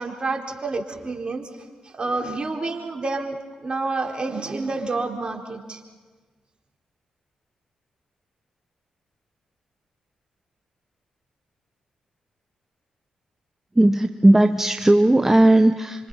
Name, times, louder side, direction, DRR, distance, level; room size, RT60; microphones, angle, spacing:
voice 1, 0.0-1.5 1.8-5.8, right 3 dB, 40° right, 2 dB, 4.2 m, -29 dB
voice 2, 13.7-16.1, right 1 dB, 15° right, 8 dB, 1.0 m, -16 dB
27.5 x 25.5 x 5.6 m, 1.4 s
supercardioid pair, 45°, 2 cm